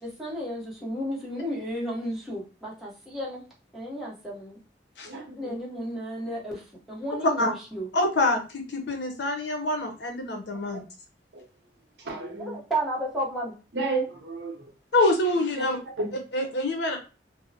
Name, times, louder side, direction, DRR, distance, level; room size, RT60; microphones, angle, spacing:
voice 1, 0.0-3.4 3.7-4.6 5.4-6.6 6.9-7.9 12.4-13.5, equal, ahead, -6 dB, 0.9 m, -33 dB
voice 2, 5.0-5.6 11.3-11.4 12.0-12.6 13.7-14.6 16.0-16.1, right 3 dB, 75° right, 3 dB, 0.7 m, -31 dB
voice 3, 7.9-10.8 14.9-15.8 16.3-17.0, left 2 dB, 70° left, 4 dB, 0.7 m, -25 dB
2.6 x 2.0 x 2.6 m, 0.33 s
head